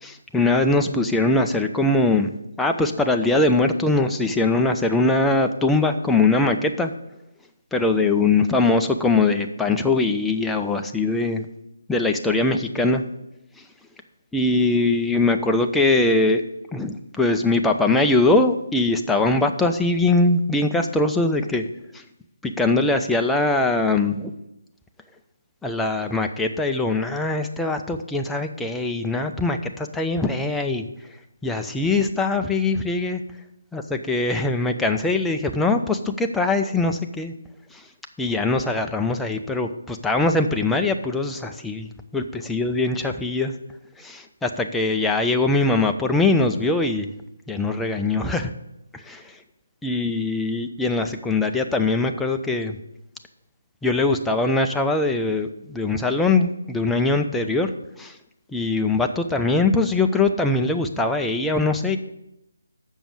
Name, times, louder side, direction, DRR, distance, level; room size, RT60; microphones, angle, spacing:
voice 1, 0.0-6.9 7.7-11.5 11.9-13.0 14.3-16.4 16.7-21.7 21.9-22.0 22.4-24.3 25.6-30.9 31.4-33.2 33.7-37.3 37.7-37.8 38.2-43.5 44.0-47.1 47.5-48.5 48.9-49.4 49.8-52.8 53.8-57.7 58.0-58.2 58.5-62.0, left 2 dB, 5° left, 4 dB, 0.4 m, -22 dB
7.0 x 6.3 x 7.2 m, 0.88 s
figure-of-eight pair, 145°, 0 cm